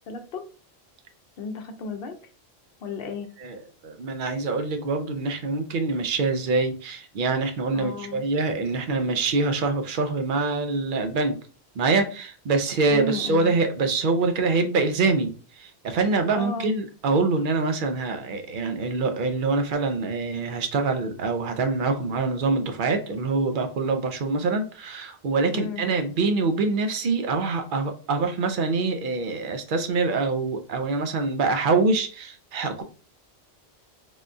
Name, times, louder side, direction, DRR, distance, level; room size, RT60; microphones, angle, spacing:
voice 1, 0.1-0.4 1.4-2.2 2.8-3.3 7.7-8.2 12.9-13.6 16.4-16.7 25.5-25.8, left 2 dB, 65° left, 6 dB, 0.8 m, -33 dB
voice 2, 3.4-11.4 11.8-15.3 15.6-32.8, right 3 dB, 60° right, 7 dB, 0.6 m, -25 dB
3.5 x 2.3 x 2.5 m, 0.38 s
omnidirectional pair, 1.1 m